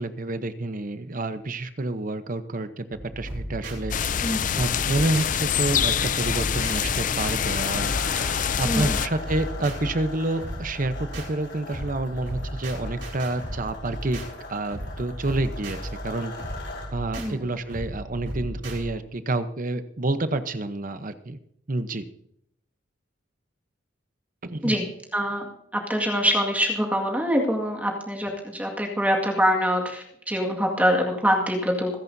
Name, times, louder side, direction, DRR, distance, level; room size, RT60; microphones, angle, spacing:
voice 1, 0.0-3.9 4.6-8.0 8.6-14.2 14.5-15.8 16.0-16.3 16.9-21.4 21.7-22.0 24.4-24.8, right 2 dB, 45° right, 10 dB, 0.9 m, -28 dB
sound 1, 2.9-18.8, equal, 65° right, 4.9 m, -36 dB
sound 2, 3.9-9.1, left 8 dB, 40° left, 0.4 m, -25 dB
sound 3, 7.4-16.9, left 3 dB, 65° left, 5.1 m, -39 dB
voice 2, 8.6-9.0 17.2-17.5 24.6-24.8 25.1-25.5 25.7-31.9, equal, 10° right, -1 dB, 2.0 m, -24 dB
26.5 x 10.5 x 2.8 m, 0.72 s
head